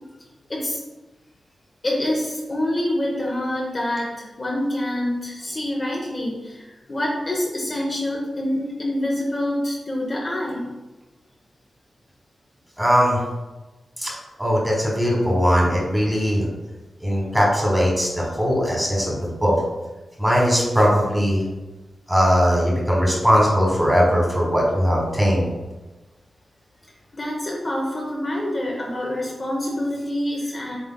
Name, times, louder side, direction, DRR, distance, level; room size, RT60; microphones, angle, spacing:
voice 1, 1.8-10.7 27.1-30.8, left 1 dB, 35° left, -3 dB, 0.8 m, -26 dB
voice 2, 12.8-13.2 14.0-14.1 14.4-16.5 17.0-19.6 20.2-21.4 22.1-25.5, equal, 5° right, -3 dB, 1.4 m, -19 dB
7.3 x 3.2 x 2.2 m, 1.1 s
wide cardioid pair, 115°, 0 cm